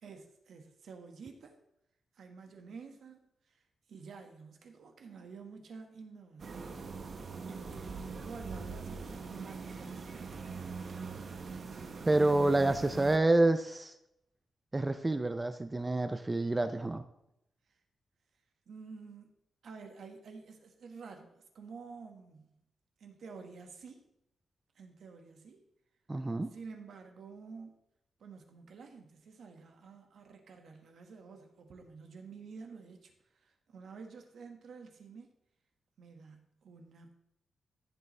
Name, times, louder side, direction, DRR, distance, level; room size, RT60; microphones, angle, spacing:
voice 1, 0.0-1.5 2.1-3.6 3.9-10.4 18.7-19.3 19.6-22.5 23.0-24.0 24.7-25.6 26.5-27.8 28.2-35.3 36.0-37.1, right 5 dB, 65° right, 4 dB, 1.5 m, -50 dB
sound 1, 6.4-13.2, right 4 dB, 45° right, 1.1 m, -42 dB
voice 2, 12.1-13.9 14.7-17.1 26.1-26.5, right 2 dB, 15° right, 10 dB, 0.4 m, -28 dB
15.0 x 6.8 x 3.2 m, 0.81 s
wide cardioid pair, 160°, 0 cm